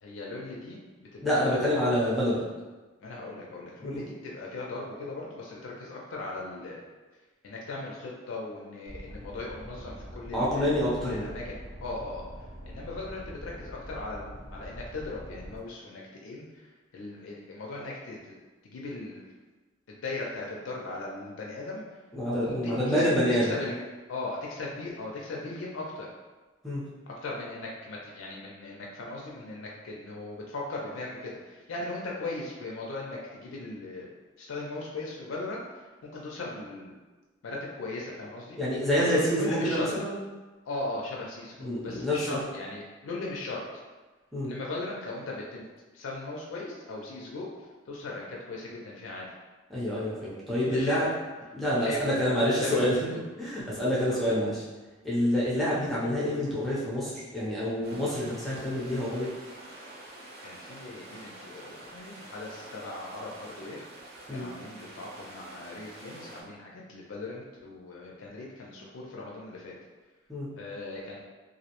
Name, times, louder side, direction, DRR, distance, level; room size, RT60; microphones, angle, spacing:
voice 1, 0.0-1.8 3.0-6.8 7.4-10.7 11.0-18.3 18.6-19.2 19.9-22.0 22.5-23.1 23.4-23.8 24.1-26.1 27.1-34.1 34.4-36.9 37.4-38.6 39.0-39.9 40.7-43.8 44.4-45.7 45.9-49.3 50.6-51.0 51.8-52.3 52.5-53.2 54.1-54.2 60.4-63.8 64.3-69.7 70.6-71.2, left 2 dB, 80° left, -3 dB, 0.4 m, -38 dB
voice 2, 1.2-2.4 3.8-4.0 10.3-11.3 22.1-23.5 26.6-26.8 38.6-40.1 41.6-42.4 44.3-44.5 49.7-51.1 51.5-53.1 53.4-54.6 55.0-59.3 64.3-64.5 70.3-70.5, equal, ahead, -9 dB, 0.5 m, -27 dB
sound 1, 8.9-15.6, equal, 80° right, 0.9 m, -44 dB
sound 2, 57.8-66.4, right 1 dB, 50° right, 0.5 m, -47 dB
2.5 x 2.0 x 2.8 m, 1.2 s
head